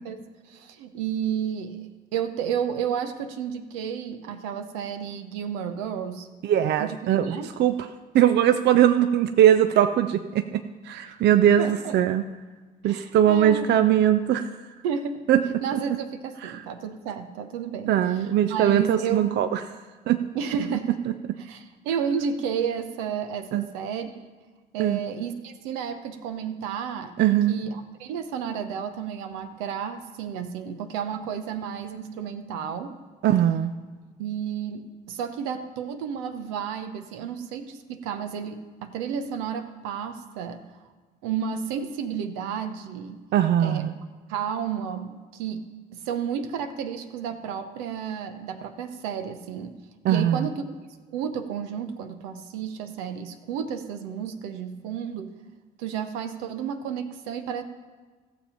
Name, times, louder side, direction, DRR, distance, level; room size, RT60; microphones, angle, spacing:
voice 1, 0.0-6.3 6.8-7.5 11.6-12.0 12.8-13.7 14.8-15.2 15.6-19.4 20.3-21.0 21.4-24.3 24.7-27.1 27.5-33.0 34.2-40.6 41.2-43.2 43.6-43.9 44.3-45.6 45.9-49.7 50.1-50.6 51.1-55.3 55.8-57.6, right 7 dB, 75° right, 8 dB, 0.8 m, -32 dB
voice 2, 6.4-7.7 8.1-12.2 12.8-14.6 15.3-15.4 15.7-15.8 16.4-16.6 17.9-19.6 20.1-20.2 21.1-21.2 23.5-23.6 24.8-25.0 27.2-27.5 33.2-33.7 43.3-43.9 50.0-50.5, right 10 dB, 55° right, 10 dB, 0.5 m, -21 dB
14.5 x 7.2 x 5.6 m, 1.4 s
hypercardioid pair, 50°, 21 cm